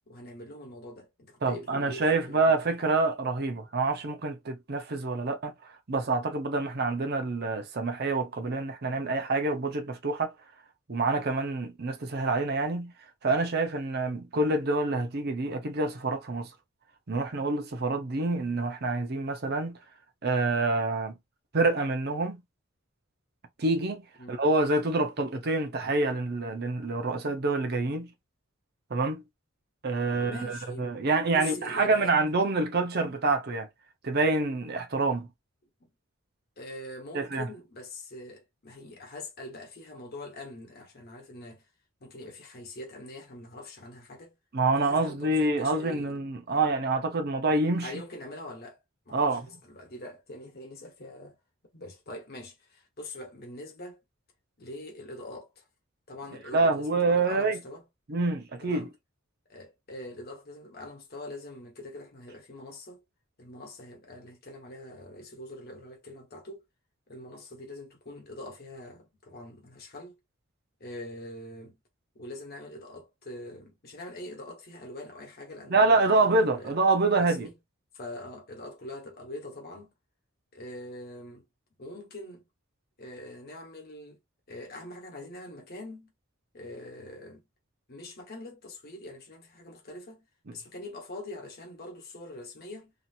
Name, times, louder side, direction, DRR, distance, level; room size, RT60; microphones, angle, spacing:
voice 1, 0.1-2.5 9.0-9.1 24.2-24.4 29.9-30.9 31.3-32.2 35.8-35.9 36.6-41.7 42.0-44.4 44.8-46.2 46.5-46.7 47.8-48.8 49.1-51.4 51.7-54.0 54.6-55.6 56.1-57.8 58.6-58.9 59.5-63.0 63.4-66.6 67.1-70.2 70.8-71.8 72.1-76.7 77.2-77.6 77.9-79.9 80.5-81.5 81.8-82.5 83.0-84.2 84.5-86.1 86.5-87.5 87.9-90.3 90.5-92.9, left 1 dB, 45° left, 1.0 m, -43 dB
voice 2, 1.4-5.5 5.9-10.3 10.9-12.9 13.2-16.5 17.1-19.8 20.2-21.1 21.5-22.4 23.6-28.1 28.9-29.2 29.8-33.7 34.0-35.3 37.1-37.5 44.5-47.9 49.1-49.4 56.5-57.6 58.1-58.9 75.7-77.5, right 3 dB, 50° right, 0.7 m, -27 dB
2.8 x 2.5 x 2.6 m
head